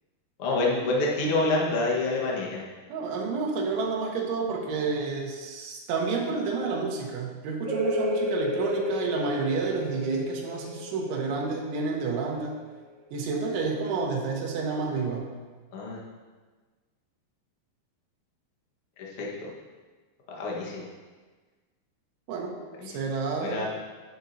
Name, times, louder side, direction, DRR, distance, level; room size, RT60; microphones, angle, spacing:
voice 1, 0.4-2.6 15.7-16.0 19.2-19.3 20.3-20.9 22.8-22.9 23.4-23.7, left 2 dB, 80° left, -3 dB, 1.2 m, -27 dB
voice 2, 2.9-12.6 13.1-15.4 22.3-22.6 22.8-23.7, right 4 dB, 85° right, -1 dB, 3.5 m, -30 dB
sound 1, 7.6-13.0, left 1 dB, 25° right, 2.8 m, -32 dB
10.0 x 9.6 x 2.8 m, 1.3 s
omnidirectional pair, 5.2 m